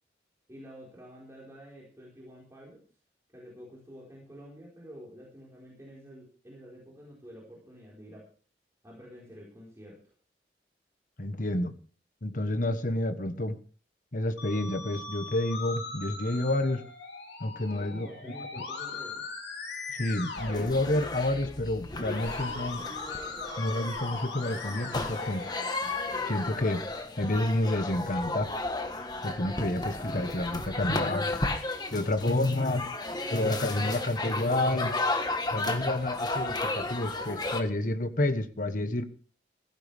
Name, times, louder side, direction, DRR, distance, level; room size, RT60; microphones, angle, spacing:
voice 1, 0.5-2.8 3.3-8.3 8.8-10.0 17.6-19.3, equal, 15° right, -5 dB, 4.7 m, -49 dB
voice 2, 11.2-11.8 12.2-13.6 14.1-16.8 17.4-18.1 18.6-18.7 20.0-22.8 23.6-25.5 26.3-26.8 27.2-28.5 29.2-31.3 31.9-32.9 33.3-35.0 35.5-39.1, left 1 dB, 50° left, 10 dB, 1.3 m, -29 dB
Musical instrument, 14.4-26.3, left 4 dB, 75° left, 3.3 m, -40 dB
sound 1, 20.4-37.6, left 2 dB, 25° left, 1.4 m, -34 dB
16.0 x 15.0 x 3.5 m, 0.43 s
head